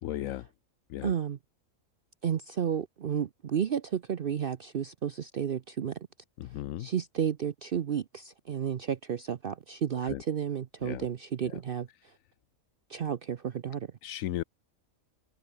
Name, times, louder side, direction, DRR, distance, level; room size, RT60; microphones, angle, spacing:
voice 1, 0.0-0.5 0.9-1.1 6.4-6.9 10.0-10.2 10.8-11.1 11.4-11.6 14.0-14.4, left 14 dB, 80° left, 1.0 m, -36 dB
voice 2, 1.0-1.4 2.2-6.0 6.8-11.9 12.9-13.9, right 8 dB, 50° right, 0.8 m, -32 dB
omnidirectional pair, 1.4 m